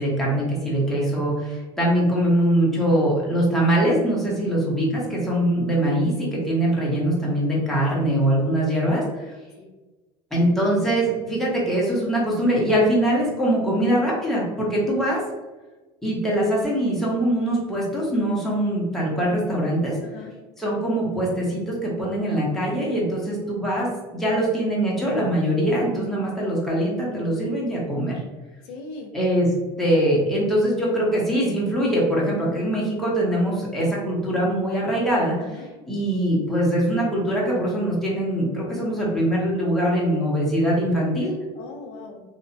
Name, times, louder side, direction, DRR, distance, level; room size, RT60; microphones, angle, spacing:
voice 1, 0.0-9.3 10.3-15.2 16.0-20.0 20.6-23.9 24.1-28.2 29.1-29.5 29.8-35.4 35.9-41.3, right 1 dB, ahead, -5 dB, 0.8 m, -22 dB
voice 2, 20.0-20.3 24.3-24.5 28.6-29.1 35.4-35.7 41.5-42.2, left 4 dB, 85° left, 2 dB, 0.6 m, -40 dB
2.6 x 2.1 x 2.6 m, 1.2 s
cardioid pair, 135°, 13 cm